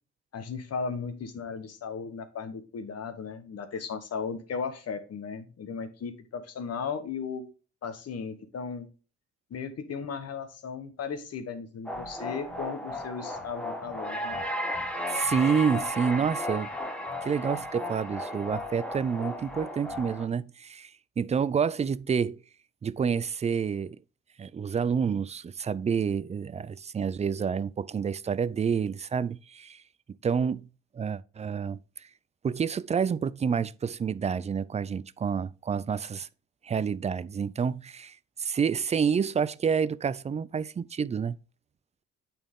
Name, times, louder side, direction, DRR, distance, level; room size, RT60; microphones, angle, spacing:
voice 1, 0.3-7.5 7.8-8.9 9.5-14.4, left 5 dB, 55° left, 1.2 m, -36 dB
sound 1, 11.9-20.3, left 1 dB, 5° left, 1.3 m, -34 dB
voice 2, 15.1-16.7 17.2-20.9 21.2-22.4 22.8-24.0 24.4-29.8 30.2-30.7 30.9-32.1 32.4-36.3 36.6-41.4, right 6 dB, 25° right, 0.3 m, -28 dB
8.8 x 4.4 x 3.6 m
cardioid pair, 90°, 30 cm